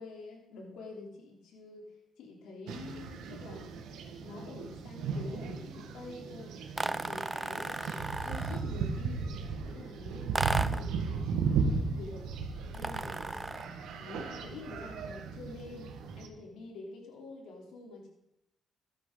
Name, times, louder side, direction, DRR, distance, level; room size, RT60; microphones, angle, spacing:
voice 1, 0.0-6.5 7.0-12.3 12.7-18.1, left 3 dB, 85° left, 0 dB, 3.3 m, -47 dB
sound 1, 2.7-16.3, right 5 dB, 85° right, 1.5 m, -36 dB
sound 2, 6.8-8.7 10.3-10.9 12.7-13.8, right 2 dB, 15° right, 0.5 m, -35 dB
14.5 x 11.5 x 3.9 m, 0.80 s
cardioid pair, 90°, 0 cm